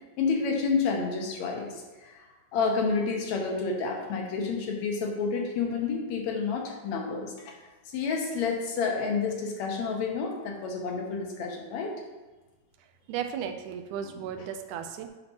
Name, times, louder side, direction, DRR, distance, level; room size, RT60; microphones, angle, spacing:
voice 1, 0.2-1.7 2.0-2.2 2.5-7.5 7.9-11.9, left 4 dB, 70° left, 1 dB, 2.1 m, -29 dB
voice 2, 13.1-15.1, right 8 dB, 85° right, 7 dB, 2.1 m, -35 dB
9.5 x 5.7 x 2.9 m, 1.2 s
omnidirectional pair, 3.5 m